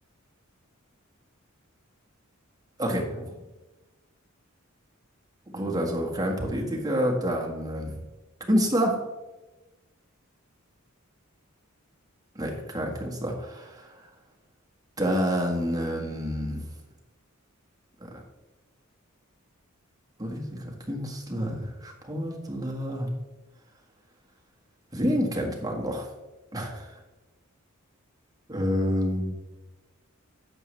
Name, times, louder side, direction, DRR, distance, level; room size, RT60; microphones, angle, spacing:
voice 1, 2.8-3.4 5.5-8.0 8.5-9.0 12.3-13.9 15.0-16.6 18.1-18.2 20.2-23.1 24.9-26.1 26.5-26.9 28.5-29.4, equal, 20° right, -1 dB, 1.7 m, -28 dB
11.0 x 6.9 x 3.3 m, 1.1 s
head